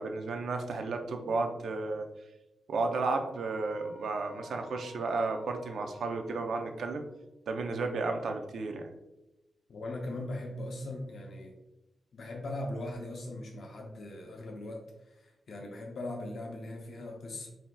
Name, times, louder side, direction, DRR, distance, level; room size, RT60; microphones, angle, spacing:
voice 1, 0.0-2.1 2.7-7.1 7.5-8.9, right 3 dB, 75° right, 5 dB, 0.5 m, -33 dB
sound 1, 2.8-7.2, left 1 dB, 85° left, 1.0 m, -54 dB
voice 2, 9.7-11.5 12.1-17.5, left 1 dB, 60° left, 0 dB, 0.6 m, -40 dB
5.9 x 2.7 x 2.2 m, 0.96 s
wide cardioid pair, 130°, 0 cm